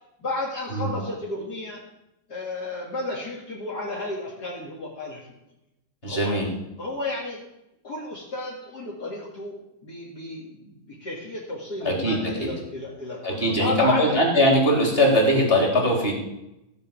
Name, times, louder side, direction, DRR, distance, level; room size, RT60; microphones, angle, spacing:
voice 1, 0.2-1.8 2.3-5.3 6.0-6.4 6.8-7.4 7.8-9.6 9.8-14.2, left 2 dB, 50° left, -5 dB, 2.9 m, -32 dB
voice 2, 6.0-6.4 11.8-12.5 13.2-16.1, equal, 25° left, -1 dB, 3.9 m, -21 dB
16.5 x 5.7 x 8.7 m, 0.88 s
omnidirectional pair, 2.2 m